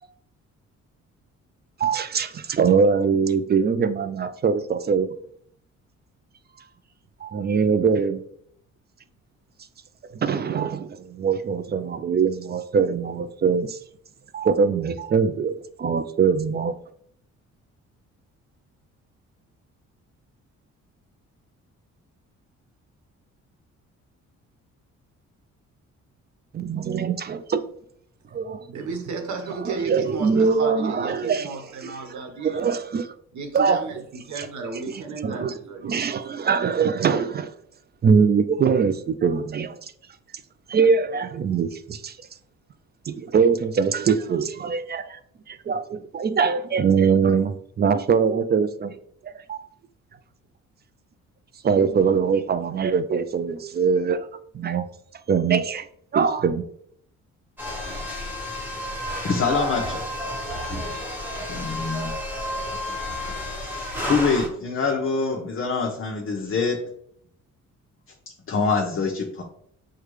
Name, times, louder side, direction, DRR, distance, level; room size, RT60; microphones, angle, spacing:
voice 1, 1.8-5.1 7.2-8.2 10.1-13.8 14.3-16.7 26.5-27.7 28.4-28.6 29.6-33.1 33.5-33.8 34.4-34.5 34.9-35.0 35.2-35.6 35.8-37.5 38.0-39.9 40.7-42.2 43.1-45.2 45.5-49.0 49.2-49.7 51.6-54.3 54.5-54.8 55.3-55.9 56.1-56.6, right 6 dB, 35° right, 0.4 m, -22 dB
voice 2, 28.7-32.8 33.3-36.3, right 4 dB, 70° right, 1.2 m, -34 dB
sound 1, 57.6-64.5, left 1 dB, 5° right, 1.2 m, -31 dB
voice 3, 59.2-60.1 61.5-62.4 63.6-66.9 68.5-69.4, left 4 dB, 45° left, 0.8 m, -25 dB
6.5 x 2.3 x 3.1 m
cardioid pair, 90°, 30 cm